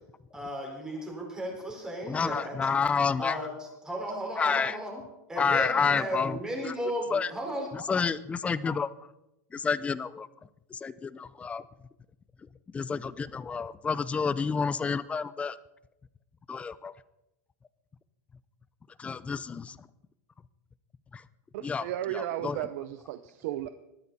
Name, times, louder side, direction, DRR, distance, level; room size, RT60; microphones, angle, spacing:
voice 1, 0.3-2.5 3.2-5.0 5.3-7.7, equal, 5° right, 0 dB, 4.7 m, -35 dB
voice 2, 2.0-3.4 4.4-4.8 5.4-6.4 6.6-6.7 7.1-7.3 7.7-8.9 9.5-10.3 10.7-11.6 12.7-15.6 16.5-16.9 19.0-19.8 21.1-21.2 21.6-21.9 22.1-22.6, left 5 dB, 15° left, 16 dB, 0.5 m, -29 dB
voice 3, 21.5-23.7, right 13 dB, 60° right, 11 dB, 0.9 m, -34 dB
21.0 x 14.0 x 4.2 m, 0.89 s
supercardioid pair, 150°, 10 cm